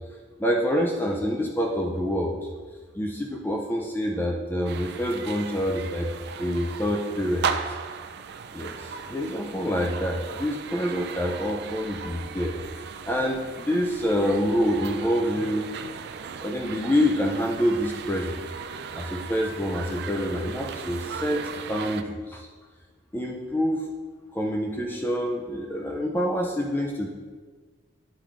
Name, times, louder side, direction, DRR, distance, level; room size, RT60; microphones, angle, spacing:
voice 1, 0.4-2.5 2.9-6.1 6.4-7.7 8.5-15.6 16.4-18.4 19.0-22.5 23.1-23.9 24.3-27.1, equal, 10° left, 0 dB, 0.4 m, -27 dB
sound 1, 4.7-22.0, right 6 dB, 55° right, 0.4 m, -37 dB
9.5 x 3.7 x 3.4 m, 1.4 s
head